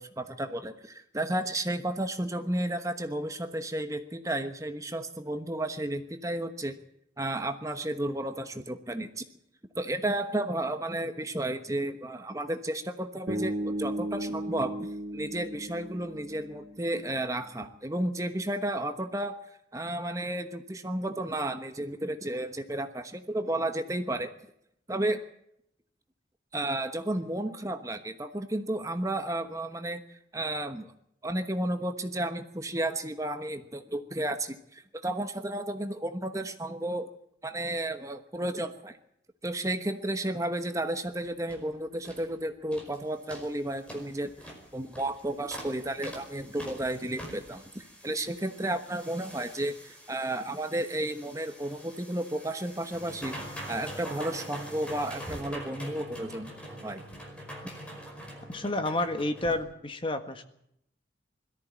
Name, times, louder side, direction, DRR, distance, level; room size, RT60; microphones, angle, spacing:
voice 1, 0.0-6.8 7.2-9.2 9.8-14.7 15.1-19.4 19.7-24.3 24.9-25.2 26.5-30.0 30.3-30.9 31.2-37.1 37.4-39.0 39.4-44.3 44.7-53.4 53.7-56.5 56.8-57.0, right 1 dB, 15° right, 7 dB, 1.1 m, -32 dB
Bass guitar, 13.3-17.4, right 1 dB, 65° right, 2.9 m, -36 dB
sound 1, 41.1-41.2 41.5-41.7 42.0-42.3 42.7-43.0 43.3-59.6, equal, 5° left, 5.3 m, -44 dB
voice 2, 58.5-60.4, left 2 dB, 30° left, 7 dB, 1.6 m, -30 dB
22.0 x 14.0 x 8.9 m, 0.74 s
head